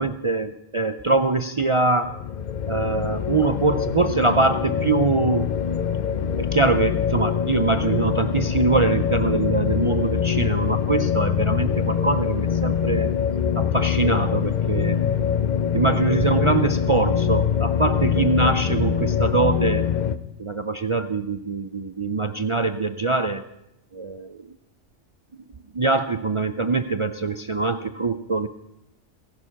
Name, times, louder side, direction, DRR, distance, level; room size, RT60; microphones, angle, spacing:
voice 1, 0.0-2.1 2.6-5.6 6.4-13.1 13.6-15.0 15.7-19.9 20.4-23.4 23.9-24.4 25.7-28.5, right 3 dB, 45° right, 9 dB, 0.4 m, -23 dB
sound 1, 2.0-20.2, left 8 dB, 50° left, 0.6 m, -24 dB
17.0 x 11.0 x 5.8 m, 0.85 s
omnidirectional pair, 1.3 m